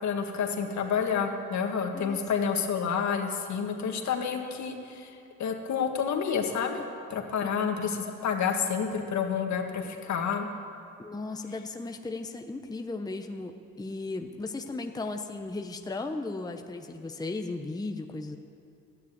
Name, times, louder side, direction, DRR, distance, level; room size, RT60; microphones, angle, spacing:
voice 1, 0.0-5.1 5.4-6.8 7.1-10.5, left 6 dB, 65° left, 3 dB, 1.7 m, -29 dB
voice 2, 11.0-18.4, left 3 dB, 15° left, 5 dB, 0.8 m, -36 dB
12.5 x 9.6 x 9.2 m, 2.5 s
cardioid pair, 90°, 30 cm